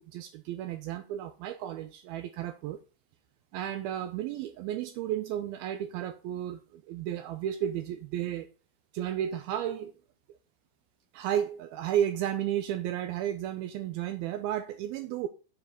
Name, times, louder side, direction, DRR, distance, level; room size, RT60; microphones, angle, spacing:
voice 1, 0.0-2.8 3.5-8.5 8.9-9.9 11.1-15.3, right 11 dB, 85° right, 2.2 m, -33 dB
9.7 x 4.7 x 5.8 m
omnidirectional pair, 4.9 m